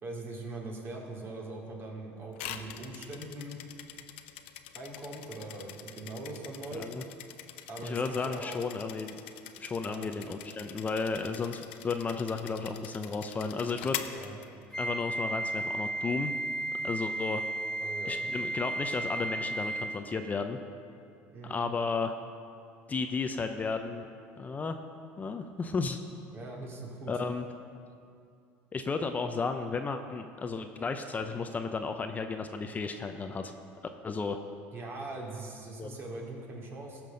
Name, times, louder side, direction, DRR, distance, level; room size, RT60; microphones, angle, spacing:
voice 1, 0.0-3.6 4.7-6.9 7.7-8.6 9.8-10.1 14.1-14.4 17.8-18.2 21.3-21.6 26.3-27.1 34.7-37.0, right 2 dB, 40° right, -1 dB, 2.6 m, -41 dB
sound 1, 2.3-15.0, left 11 dB, 85° left, 0.6 m, -44 dB
voice 2, 6.7-7.0 7.8-9.2 9.6-14.0 14.8-16.3 16.8-17.4 18.1-20.6 21.4-22.1 22.9-24.0 24.4-24.8 25.2-26.0 27.1-27.5 28.7-33.5 34.0-34.4 35.8-35.9, left 4 dB, 25° left, 6 dB, 0.6 m, -33 dB
Wind instrument woodwind instrument, 14.7-20.1, right 2 dB, 10° left, 1.0 m, -34 dB
16.0 x 6.1 x 5.2 m, 2.4 s
supercardioid pair, 90°, 6 cm